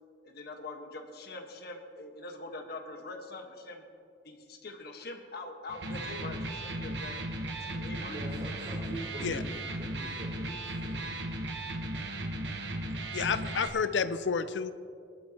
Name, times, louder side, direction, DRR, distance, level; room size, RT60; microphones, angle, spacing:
voice 1, 0.2-3.8 4.2-7.2 7.6-8.2, left 2 dB, 60° left, 4 dB, 1.5 m, -43 dB
Electric guitar, 5.7-13.7, right 1 dB, 75° right, 1.2 m, -36 dB
voice 2, 8.0-9.5 9.7-11.1 11.9-12.0, right 1 dB, 45° right, -6 dB, 2.9 m, -44 dB
voice 3, 13.1-14.7, left 5 dB, 85° left, 12 dB, 0.6 m, -30 dB
24.0 x 12.0 x 3.0 m, 2.4 s
head